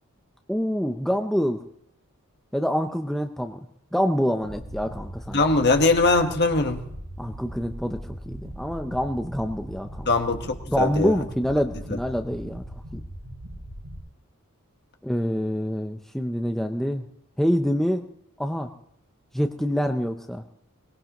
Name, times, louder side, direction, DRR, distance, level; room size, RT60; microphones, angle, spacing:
voice 1, 0.5-1.6 2.5-3.7 3.9-5.4 7.2-10.1 10.7-12.6 12.9-13.0 15.0-17.1 17.4-18.0 18.4-18.7 19.3-20.4, equal, ahead, 5 dB, 0.6 m, -26 dB
sound 1, 4.4-14.0, equal, 80° right, 7.9 m, -39 dB
voice 2, 5.3-6.8 10.1-11.2, left 3 dB, 50° left, 5 dB, 1.4 m, -21 dB
22.5 x 19.0 x 3.0 m, 0.73 s
head